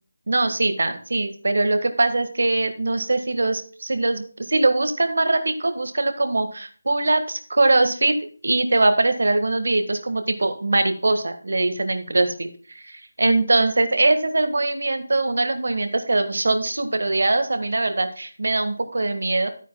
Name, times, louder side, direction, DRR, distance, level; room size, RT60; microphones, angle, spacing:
voice 1, 0.3-8.1 8.4-19.5, right 2 dB, 70° right, 7 dB, 1.6 m, -22 dB
13.0 x 9.1 x 2.2 m, 0.43 s
figure-of-eight pair, 165°, 0 cm